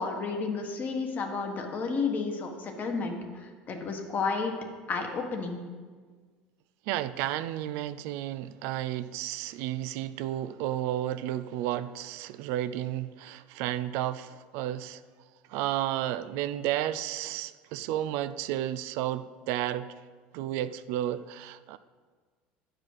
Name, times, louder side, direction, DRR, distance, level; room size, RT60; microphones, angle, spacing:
voice 1, 0.0-4.5 4.9-5.6, left 4 dB, 40° left, 3 dB, 1.4 m, -31 dB
voice 2, 6.9-15.0 15.5-19.9 20.3-21.8, right 13 dB, 70° right, 13 dB, 0.4 m, -32 dB
9.2 x 5.0 x 5.8 m, 1.5 s
supercardioid pair, 95°, 5 cm